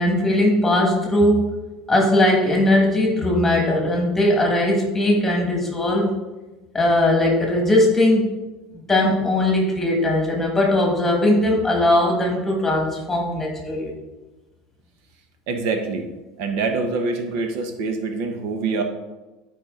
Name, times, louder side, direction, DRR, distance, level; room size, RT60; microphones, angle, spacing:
voice 1, 0.0-1.5 1.9-6.2 6.7-8.3 8.9-14.0, left 1 dB, 10° left, 0 dB, 1.8 m, -19 dB
voice 2, 15.5-16.0 16.4-18.8, right 4 dB, 65° right, 5 dB, 1.2 m, -25 dB
11.5 x 4.9 x 3.9 m, 1.1 s
supercardioid pair, 150°, 2 cm